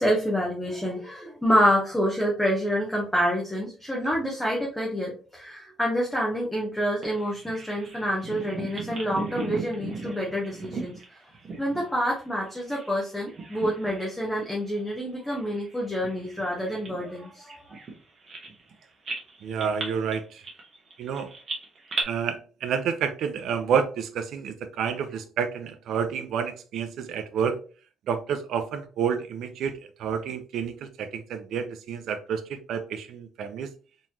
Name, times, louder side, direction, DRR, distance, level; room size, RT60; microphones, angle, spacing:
voice 1, 0.0-11.0 11.6-17.8, equal, 5° left, 0.7 m, -27 dB
Bird vocalization bird call bird song, 7.0-13.0 13.3-14.2 14.5-14.7 15.3-18.7 19.0-22.0, right 3 dB, 30° right, 1.0 m, -37 dB
voice 2, 19.4-20.4 21.0-21.3 22.1-27.6 28.1-33.7, right 7 dB, 60° right, 0.5 m, -29 dB
3.8 x 3.0 x 2.7 m
cardioid pair, 170°, 0 cm